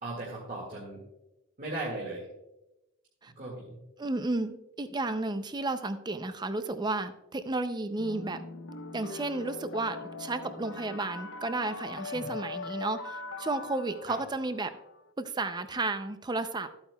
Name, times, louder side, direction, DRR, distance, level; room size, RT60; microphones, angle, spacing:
voice 1, 0.0-1.0 1.6-2.3 3.4-3.8 12.1-12.3 14.1-14.2, right 2 dB, 40° right, -4 dB, 2.0 m, -37 dB
voice 2, 4.0-8.4 8.9-14.7 15.2-16.9, right 2 dB, 20° right, 10 dB, 0.5 m, -33 dB
sound 1, 8.0-15.0, left 3 dB, 65° left, 0.7 m, -41 dB
13.5 x 8.7 x 2.3 m, 0.95 s
head